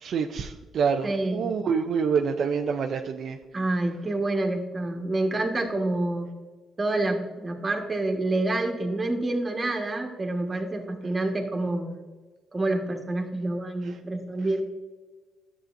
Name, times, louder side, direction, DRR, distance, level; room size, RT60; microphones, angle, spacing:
voice 1, 0.0-3.4, right 6 dB, 60° right, 5 dB, 0.4 m, -26 dB
voice 2, 1.0-1.5 3.5-6.3 6.8-12.0 12.5-14.6, right 2 dB, 25° right, 2 dB, 1.5 m, -27 dB
11.5 x 7.6 x 2.6 m, 1.3 s
cardioid pair, 90°, 0 cm